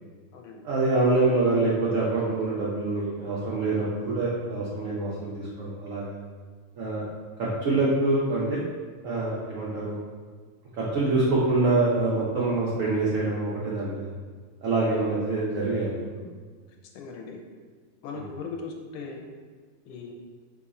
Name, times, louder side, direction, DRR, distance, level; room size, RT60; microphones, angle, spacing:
voice 1, 0.6-6.1 6.8-7.0 7.4-8.6 9.0-9.9 10.8-14.1 14.6-16.2 18.1-18.2, right 2 dB, 85° right, -6 dB, 0.7 m, -25 dB
voice 2, 16.9-17.4 18.0-19.2 19.8-20.1, left 4 dB, 75° left, 1 dB, 1.4 m, -38 dB
5.1 x 2.4 x 4.1 m, 1.5 s
omnidirectional pair, 2.3 m